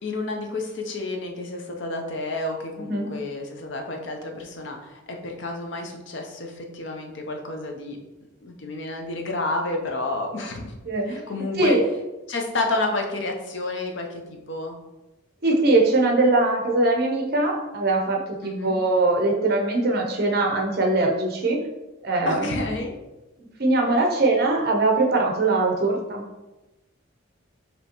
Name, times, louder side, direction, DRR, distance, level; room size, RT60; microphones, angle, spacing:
voice 1, 0.0-8.0 8.4-10.8 11.0-11.8 12.3-14.8 18.4-18.8 22.3-22.9, left 2 dB, 65° left, 3 dB, 0.7 m, -30 dB
voice 2, 10.9-11.2 11.6-11.8 15.4-21.6 22.0-22.7 23.6-26.2, right 2 dB, 50° right, 1 dB, 0.8 m, -21 dB
5.2 x 2.9 x 2.9 m, 1.0 s
head